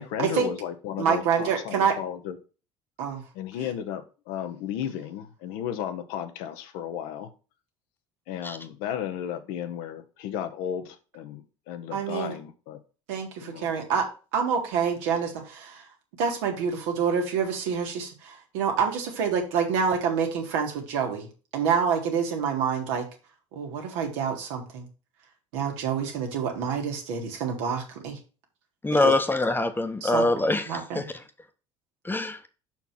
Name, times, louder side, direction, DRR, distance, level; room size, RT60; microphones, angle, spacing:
voice 1, 0.0-2.4 3.3-7.3 8.3-12.8 13.4-13.7, left 9 dB, 70° left, 1.0 m, -34 dB
voice 2, 1.0-2.0 3.0-3.2 11.9-12.4 13.1-15.9 16.2-21.3 21.5-23.1 23.5-24.9 25.5-28.2 28.9-29.1 30.0-31.1, right 6 dB, 70° right, 1.8 m, -27 dB
voice 3, 28.8-31.1 32.0-32.4, left 2 dB, 15° left, 1.0 m, -24 dB
5.9 x 4.5 x 5.7 m
hypercardioid pair, 65°, 16 cm